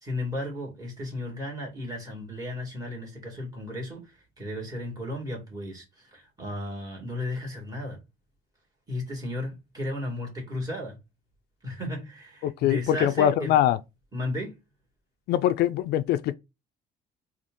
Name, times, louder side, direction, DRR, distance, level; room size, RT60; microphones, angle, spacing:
voice 1, 0.0-8.0 8.9-11.0 11.6-13.6 14.1-14.6, left 1 dB, 20° right, 2.1 m, -34 dB
voice 2, 12.4-13.8 15.3-16.3, left 11 dB, 70° left, 0.4 m, -23 dB
3.7 x 2.5 x 3.6 m
cardioid pair, 110°, 17 cm